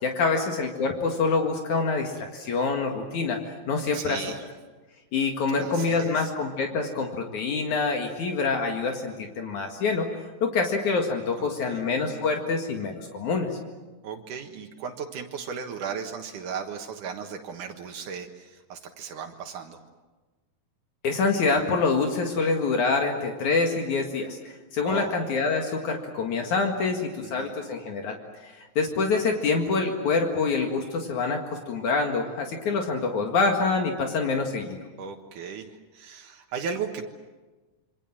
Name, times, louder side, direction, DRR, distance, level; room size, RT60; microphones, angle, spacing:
voice 1, 0.0-3.4 3.7-4.2 5.1-10.1 10.4-13.6 21.0-24.4 24.7-28.2 28.4-34.8, left 4 dB, 70° left, 3 dB, 3.3 m, -26 dB
voice 2, 3.9-4.4 5.5-6.3 11.4-11.8 14.0-19.8 24.8-25.1 26.4-26.5 27.2-27.5 35.0-35.7 35.9-37.1, right 6 dB, 80° right, 3 dB, 3.0 m, -36 dB
27.5 x 24.5 x 7.6 m, 1.2 s
omnidirectional pair, 3.5 m